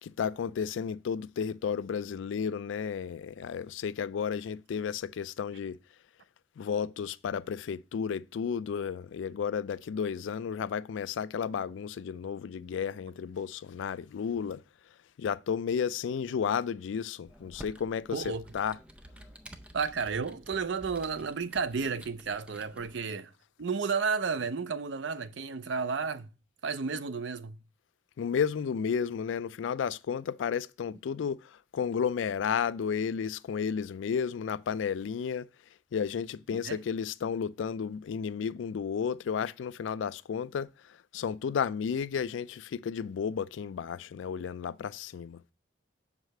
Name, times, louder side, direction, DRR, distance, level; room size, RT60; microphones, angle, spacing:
voice 1, 0.0-5.8 6.6-14.6 15.2-18.2 18.5-18.8 28.2-35.5 35.9-40.7 41.1-45.4, left 7 dB, 85° left, 0.3 m, -32 dB
Computer keyboard, 17.2-23.0, equal, 5° right, 0.5 m, -51 dB
voice 2, 18.1-18.4 19.7-23.3 23.6-26.3 26.6-27.6 36.5-36.8, right 5 dB, 75° right, 0.5 m, -32 dB
5.7 x 4.9 x 6.4 m
head